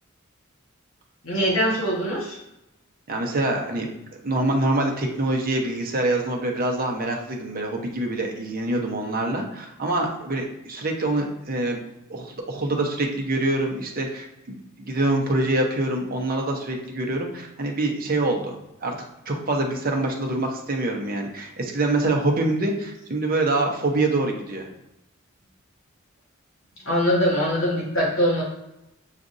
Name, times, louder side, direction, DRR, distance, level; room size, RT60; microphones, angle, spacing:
voice 1, 1.2-2.4 26.8-28.4, equal, 65° left, -5 dB, 1.3 m, -22 dB
voice 2, 3.1-3.9 4.2-11.8 12.1-18.9 19.3-24.7, right 2 dB, 45° right, 1 dB, 0.8 m, -25 dB
7.2 x 2.5 x 2.5 m, 0.89 s
head